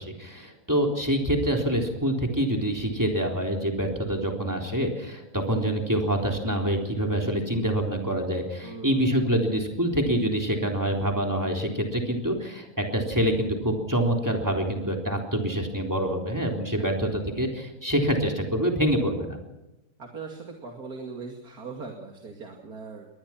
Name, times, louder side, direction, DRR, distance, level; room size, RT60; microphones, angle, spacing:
voice 1, 0.0-19.4, right 1 dB, 10° right, 2 dB, 3.7 m, -26 dB
voice 2, 8.6-9.1 16.8-17.2 20.0-23.1, right 4 dB, 65° right, 2 dB, 2.9 m, -40 dB
23.0 x 19.5 x 6.0 m, 0.96 s
omnidirectional pair, 1.7 m